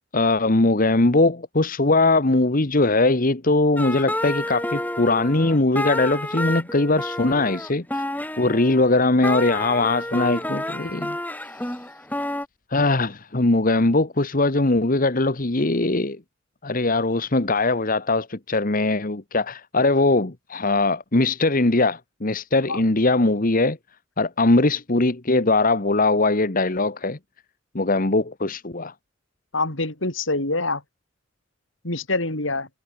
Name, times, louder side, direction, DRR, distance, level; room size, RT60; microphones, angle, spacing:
voice 1, 0.1-8.0 8.4-11.2 11.7-11.8 12.7-16.2 16.6-23.8 24.2-27.2 27.7-28.9, left 2 dB, 45° left, 1.4 m, -21 dB
sound 1, 3.8-12.4, left 1 dB, 10° left, 6.0 m, -29 dB
voice 2, 29.5-30.8 31.8-32.7, left 2 dB, 75° left, 5.4 m, -25 dB
head